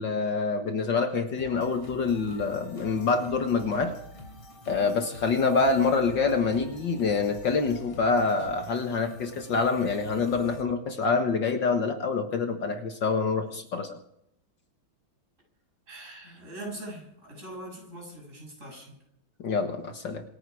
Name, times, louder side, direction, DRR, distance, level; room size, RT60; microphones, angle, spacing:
voice 1, 0.0-3.9 4.7-14.0 19.4-20.2, left 4 dB, 60° left, 5 dB, 2.1 m, -26 dB
sound 1, 1.4-10.6, left 1 dB, 85° left, 4.5 m, -46 dB
voice 2, 15.9-18.9, right 1 dB, 35° right, 0 dB, 7.8 m, -42 dB
26.5 x 11.0 x 4.9 m, 0.74 s
omnidirectional pair, 2.3 m